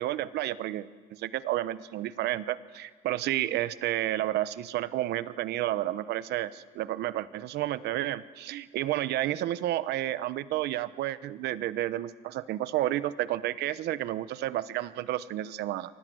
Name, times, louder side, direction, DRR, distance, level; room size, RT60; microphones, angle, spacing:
voice 1, 0.0-15.9, right 14 dB, 75° right, 15 dB, 1.0 m, -31 dB
29.5 x 24.0 x 7.8 m, 1.5 s
cardioid pair, 110°, 17 cm